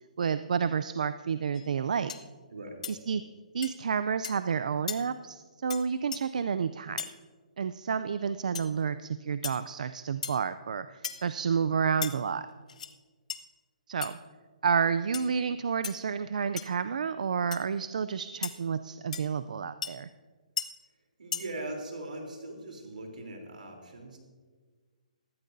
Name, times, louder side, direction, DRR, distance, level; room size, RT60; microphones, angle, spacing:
voice 1, 0.2-2.1 2.9-3.2 3.5-7.0 7.6-12.5 13.9-14.2 14.6-20.1, right 6 dB, 70° right, 13 dB, 0.4 m, -30 dB
sound 1, 1.5-1.7 2.1-2.3 2.8-3.0 3.6-3.7 4.2-4.4 4.9-5.0 5.7-5.8 6.1-6.2 7.0-7.1 8.5-8.7 9.4-9.6 10.2-10.4 11.0-11.3 12.0-12.1 12.7-12.9 13.3-13.4 14.0-14.1 15.1-15.3 15.8-15.9 16.6-16.7 17.5-17.6 18.4-18.5 19.1-19.2 19.8-19.9 20.6-20.7 21.3-21.4, left 7 dB, 60° left, 0.8 m, -36 dB
voice 2, 2.5-2.8 21.2-24.2, right 2 dB, 90° right, 1 dB, 3.4 m, -40 dB
19.5 x 13.0 x 2.7 m, 1.5 s
hypercardioid pair, 155°, 4 cm